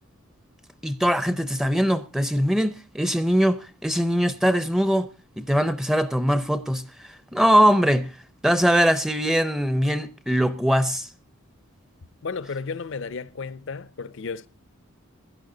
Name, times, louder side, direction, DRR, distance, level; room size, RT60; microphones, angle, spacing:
voice 1, 0.8-5.1 5.4-6.8 7.3-8.1 8.4-11.1, equal, ahead, 0.5 m, -21 dB
voice 2, 12.2-14.5, left 4 dB, 60° left, 0.6 m, -33 dB
16.0 x 11.5 x 3.8 m
head